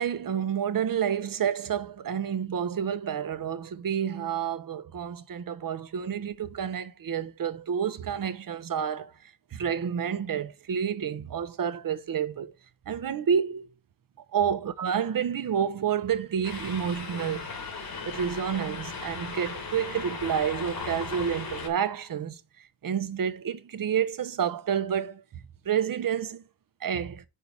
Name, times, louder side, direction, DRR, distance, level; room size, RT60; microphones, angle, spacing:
voice 1, 0.0-9.1 9.5-12.5 12.9-13.7 14.3-17.5 18.0-22.4 22.8-25.2 25.6-26.4 26.8-27.2, right 8 dB, 60° right, 0.9 m, -29 dB
sound 1, 16.4-21.7, left 4 dB, 65° left, 2.3 m, -37 dB
5.6 x 4.6 x 5.5 m
cardioid pair, 75°, 39 cm